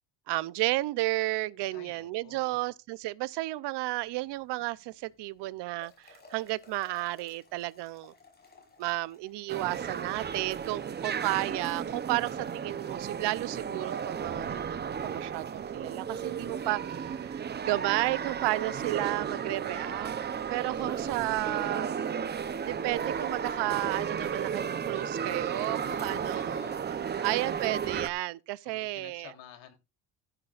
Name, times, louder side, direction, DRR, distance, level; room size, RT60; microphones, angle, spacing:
voice 1, 0.3-8.1 8.8-20.1 20.5-21.9 22.7-26.6 27.2-29.3, right 19 dB, 65° right, 0.7 m, -32 dB
voice 2, 1.7-2.7 11.0-11.4 19.4-20.1 20.8-21.6 25.8-27.5 28.6-29.7, left 9 dB, 85° left, 3.5 m, -52 dB
sound 1, 4.0-16.9, left 3 dB, 20° left, 6.1 m, -62 dB
sound 2, 9.5-28.1, right 7 dB, 25° right, 0.7 m, -34 dB
15.0 x 10.0 x 2.5 m
cardioid pair, 145°, 44 cm